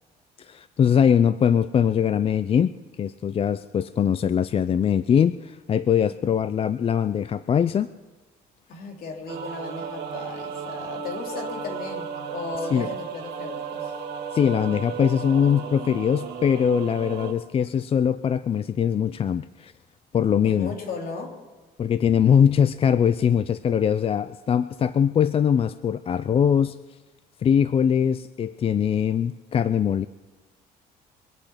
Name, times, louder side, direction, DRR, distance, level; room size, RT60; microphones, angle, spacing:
voice 1, 0.4-7.9 12.7-12.9 14.3-19.7 20.1-20.7 21.8-26.8 27.4-30.1, left 8 dB, 35° left, 14 dB, 0.4 m, -22 dB
voice 2, 8.7-13.9 20.4-21.3, left 4 dB, 60° left, 2 dB, 3.2 m, -36 dB
sound 1, 9.3-17.3, right 6 dB, 80° right, 1.7 m, -34 dB
24.0 x 8.8 x 5.9 m, 1.2 s
cardioid pair, 110°, 17 cm